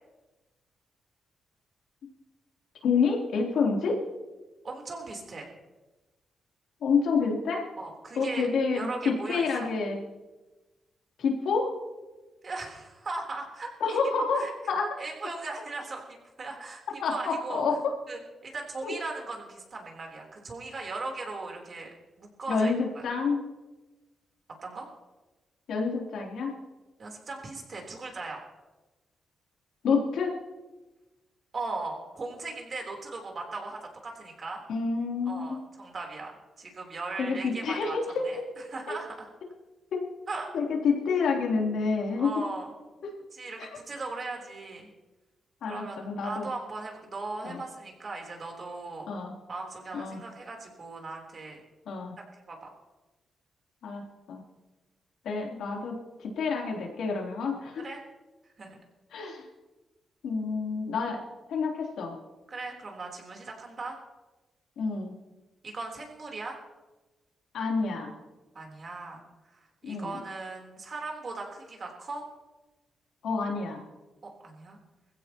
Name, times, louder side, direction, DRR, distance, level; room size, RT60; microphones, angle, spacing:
voice 1, 2.8-4.0 6.8-7.6 8.1-10.0 11.2-11.7 13.8-15.0 17.0-17.7 18.8-18.9 22.5-23.4 25.7-26.5 29.8-30.3 34.7-35.6 37.2-38.1 38.4-38.5 38.9-39.0 39.9-40.0 40.5-42.4 43.0-43.1 43.6-43.7 45.6-46.5 47.4-47.6 49.1-49.3 49.9-50.2 51.9-52.1 53.8-54.4 55.2-57.8 59.1-59.5 60.2-61.2 61.5-62.2 64.8-65.1 67.5-68.1 69.8-70.2 73.2-73.8, left 5 dB, 85° left, -1 dB, 3.4 m, -28 dB
voice 2, 4.6-5.5 7.8-8.5 8.7-9.7 12.4-14.0 14.3-14.5 15.0-16.8 17.1-17.6 18.1-21.9 22.2-23.0 24.6-24.9 27.0-28.4 31.5-34.6 35.3-38.0 38.2-38.4 38.7-39.3 40.3-40.5 42.2-42.7 43.3-44.9 45.7-49.1 49.5-51.6 52.2-52.7 57.7-58.0 58.6-58.8 62.5-64.0 65.6-66.6 68.5-72.2 74.2-74.8, right 3 dB, 45° right, 1 dB, 3.7 m, -38 dB
21.0 x 15.5 x 3.0 m, 1.1 s
cardioid pair, 95°, 0 cm